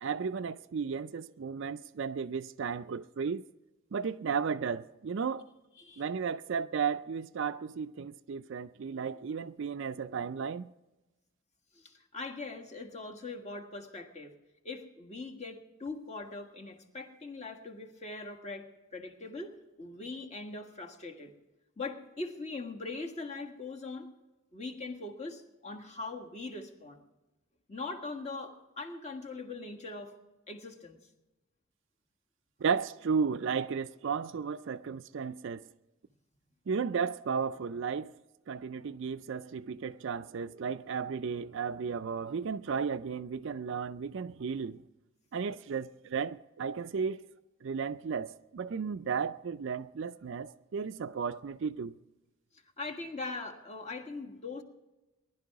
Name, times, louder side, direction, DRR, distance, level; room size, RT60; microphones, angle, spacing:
voice 1, 0.0-3.4 3.9-5.4 6.0-10.7 32.6-35.7 36.7-38.1 38.5-44.8 45.3-47.3 47.6-52.0, right 6 dB, 55° right, 0.4 m, -34 dB
voice 2, 11.7-14.3 14.6-21.3 21.8-24.1 24.5-27.0 27.7-30.1 30.5-31.0 52.8-54.6, left 3 dB, 30° left, 1.6 m, -41 dB
19.5 x 11.5 x 4.7 m
head